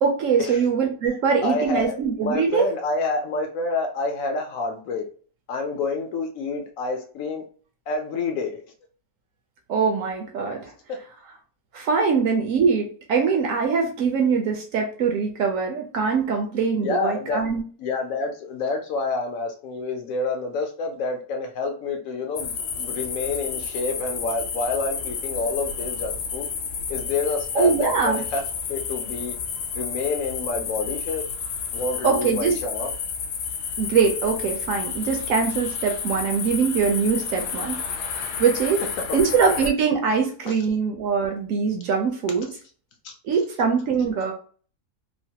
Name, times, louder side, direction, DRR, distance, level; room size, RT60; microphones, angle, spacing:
voice 1, 0.0-2.6 9.7-10.7 11.7-17.6 27.5-28.2 32.0-32.5 33.8-37.8 38.4-38.8 39.1-42.5 43.2-44.3, right 5 dB, 70° right, 2 dB, 0.9 m, -22 dB
voice 2, 1.4-5.0 5.5-7.4 7.9-8.6 10.9-11.0 16.8-26.5 26.9-28.4 28.7-29.4 29.7-31.2 31.7-32.9 39.1-39.2 40.5-40.6 43.0-43.1, left 3 dB, 70° left, 3 dB, 0.9 m, -28 dB
sound 1, 22.4-39.7, left 6 dB, 90° left, 1.1 m, -31 dB
3.1 x 2.1 x 2.7 m, 0.42 s
omnidirectional pair, 1.6 m